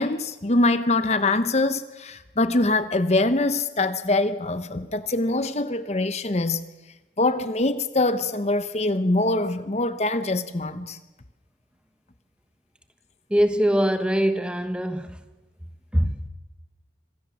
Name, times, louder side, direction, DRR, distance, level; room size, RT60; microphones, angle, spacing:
voice 1, 0.0-6.6 7.2-11.0, left 2 dB, 35° left, 0.9 m, -23 dB
voice 2, 13.3-15.2 15.9-16.1, equal, 5° right, 1.2 m, -22 dB
26.0 x 16.5 x 7.1 m
head